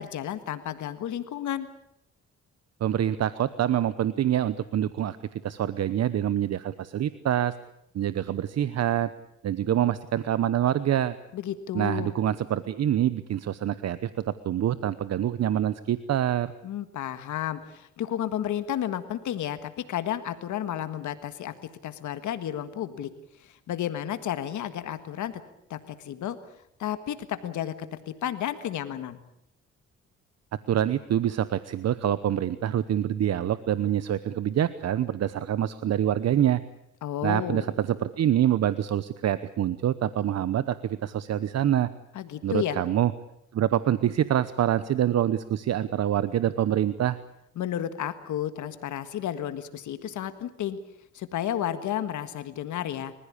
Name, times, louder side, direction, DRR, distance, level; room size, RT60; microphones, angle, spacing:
voice 1, 0.0-1.7 11.3-12.1 16.6-21.5 21.8-23.1 23.4-25.4 25.7-26.4 26.8-29.2 37.0-37.7 42.1-42.8 47.6-50.8 51.1-53.1, left 11 dB, 75° left, 11 dB, 1.7 m, -32 dB
voice 2, 2.8-7.5 7.9-9.1 9.4-11.2 11.7-16.5 30.7-36.6 37.2-41.9 42.4-43.1 43.5-47.2, right 11 dB, 60° right, 14 dB, 0.9 m, -26 dB
30.0 x 15.5 x 8.5 m, 0.76 s
cardioid pair, 90°, 30 cm